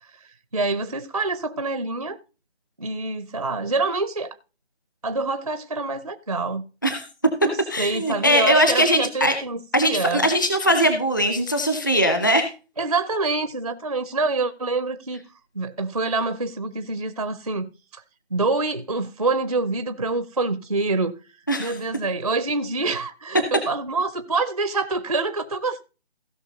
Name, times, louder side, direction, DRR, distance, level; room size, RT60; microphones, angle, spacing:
voice 1, 0.2-2.2 2.8-4.3 5.0-6.6 7.4-10.3 12.8-15.2 15.5-18.0 18.3-21.1 21.6-25.8, right 3 dB, 35° right, 0.5 m, -26 dB
voice 2, 7.7-9.3 9.7-12.5 21.5-21.8, equal, 20° left, 0.5 m, -20 dB
16.5 x 5.7 x 3.8 m
figure-of-eight pair, 165°, 33 cm